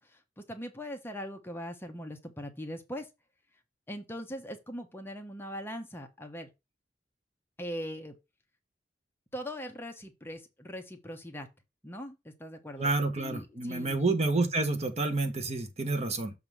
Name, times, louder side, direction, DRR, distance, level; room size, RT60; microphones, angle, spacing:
voice 1, 0.0-3.1 3.9-6.5 7.6-8.1 9.3-11.5 11.8-12.9 13.2-14.0 16.1-16.2, equal, 15° left, 1.0 m, -41 dB
voice 2, 12.8-16.3, right 3 dB, 40° right, 1.0 m, -29 dB
6.7 x 3.6 x 6.0 m
head